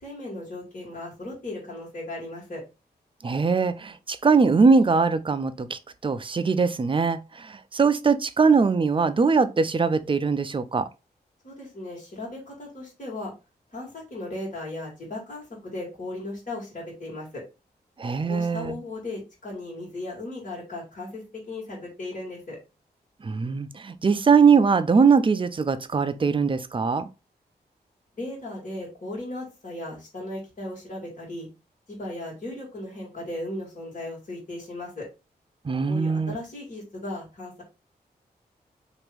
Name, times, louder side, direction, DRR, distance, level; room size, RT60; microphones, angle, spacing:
voice 1, 0.0-2.6 11.4-13.3 13.7-17.4 18.3-22.6 28.2-31.5 31.9-35.1 35.9-37.6, left 2 dB, 50° left, 1.7 m, -36 dB
voice 2, 3.2-10.9 18.0-18.8 23.2-27.1 35.6-36.4, right 5 dB, 30° right, 0.4 m, -21 dB
2.9 x 2.5 x 3.3 m
cardioid pair, 45°, 18 cm